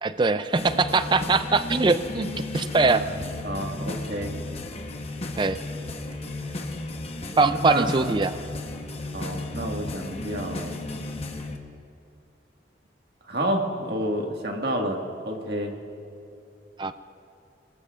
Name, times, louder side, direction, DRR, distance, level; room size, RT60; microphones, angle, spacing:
voice 1, 0.0-3.0 5.4-5.6 7.4-8.4 16.8-16.9, right 3 dB, 25° right, 12 dB, 0.4 m, -22 dB
sound 1, 0.6-11.6, left 2 dB, 35° left, 1.0 m, -34 dB
voice 2, 3.4-4.3 7.6-8.2 9.1-10.8 13.3-15.0 15.3-15.7, right 1 dB, 60° right, 1 dB, 1.7 m, -29 dB
26.5 x 19.0 x 2.5 m, 2.6 s
head